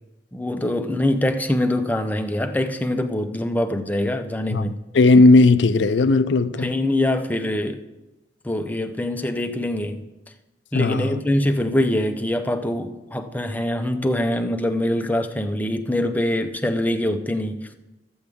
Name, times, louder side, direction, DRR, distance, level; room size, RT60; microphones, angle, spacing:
voice 1, 0.3-4.8 6.6-7.8 8.4-10.0 10.7-17.7, left 1 dB, 10° left, 0.6 m, -24 dB
voice 2, 4.5-6.7 10.7-11.1, left 3 dB, 80° left, 0.5 m, -16 dB
13.5 x 7.9 x 3.6 m
head